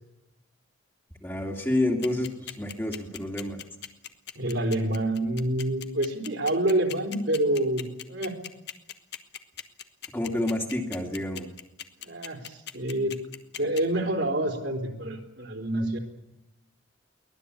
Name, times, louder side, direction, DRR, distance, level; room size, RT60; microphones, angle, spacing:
voice 1, 1.2-3.6 10.1-11.5, left 1 dB, 10° left, 1 dB, 2.5 m, -29 dB
sound 1, 2.0-13.8, left 10 dB, 55° left, 1.5 m, -39 dB
voice 2, 4.4-8.3 12.0-13.2 13.6-16.0, right 1 dB, 65° right, 4 dB, 3.9 m, -27 dB
23.5 x 19.0 x 8.5 m, 0.92 s
head